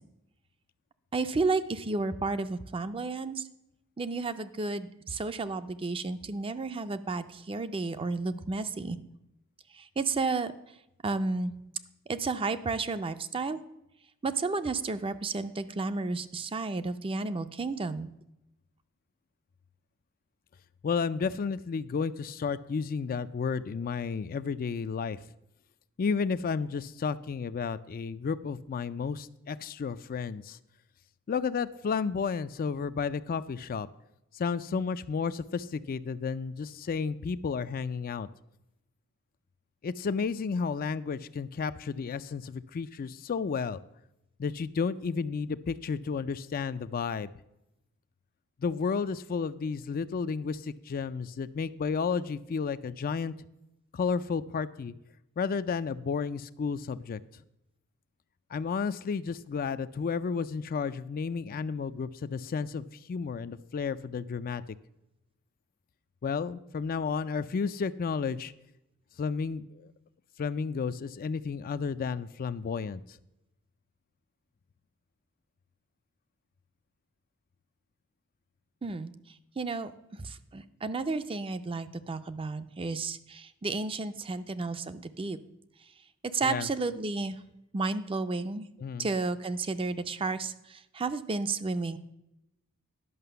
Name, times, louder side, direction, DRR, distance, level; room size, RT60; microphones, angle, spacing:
voice 1, 1.1-3.5 4.0-9.0 9.7-10.5 11.0-11.5 12.1-13.6 14.2-18.1 78.8-79.1 79.6-79.9 80.2-85.4 86.3-87.4 87.7-88.7 89.0-92.0, right 3 dB, 25° right, 11 dB, 0.5 m, -32 dB
voice 2, 20.8-25.2 26.0-30.6 31.3-33.9 34.3-38.3 39.8-43.8 44.4-47.3 48.6-53.3 53.9-54.9 55.4-57.2 58.5-64.6 66.2-68.5 69.2-69.9 70.4-73.0 86.4-86.7 88.8-89.1, left 5 dB, 40° left, 13 dB, 0.3 m, -32 dB
11.0 x 5.7 x 6.7 m, 0.88 s
head